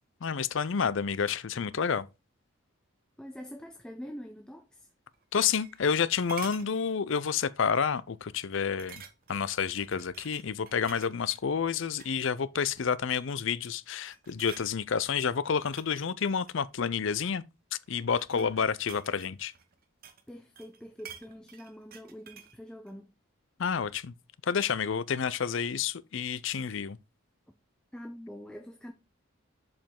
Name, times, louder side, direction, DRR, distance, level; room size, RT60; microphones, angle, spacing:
voice 1, 0.2-2.1 5.3-9.0 9.3-17.4 17.9-19.5 23.6-24.1 24.4-27.0, left 6 dB, 60° left, 0.5 m, -29 dB
voice 2, 3.2-4.9 18.3-18.7 20.3-23.1 27.9-28.9, equal, 5° left, 0.5 m, -45 dB
sound 1, 5.1-6.0 6.3-6.7 7.2-7.4 7.8-7.9 8.8-9.4 9.8-11.4 11.9-12.2 12.5-13.1 13.6-13.9 14.1-14.7 15.4-17.1 17.9-20.3 20.6-22.6 22.9-23.0, right 8 dB, 40° right, 0.8 m, -49 dB
7.2 x 5.2 x 3.7 m
head